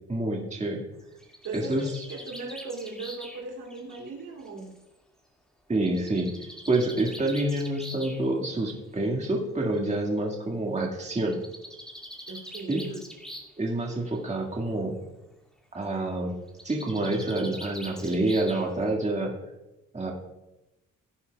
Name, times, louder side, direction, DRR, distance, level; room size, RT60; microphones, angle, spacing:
voice 1, 0.1-0.9 1.5-2.0 5.7-6.3 6.7-11.4 12.7-12.9 13.6-15.0 15.7-16.4 16.6-19.3 19.9-20.1, right 2 dB, 25° right, 0 dB, 2.0 m, -27 dB
Bird, 1.0-4.8 5.9-8.2 9.3-9.4 9.7-9.8 10.1-10.2 11.2-13.6 13.9-14.4 16.5-18.9, equal, ahead, 2.3 m, -44 dB
voice 2, 1.4-4.7 12.3-13.0, right 3 dB, 85° right, 0 dB, 2.9 m, -38 dB
16.5 x 10.0 x 2.4 m, 0.99 s
cardioid pair, 90°, 30 cm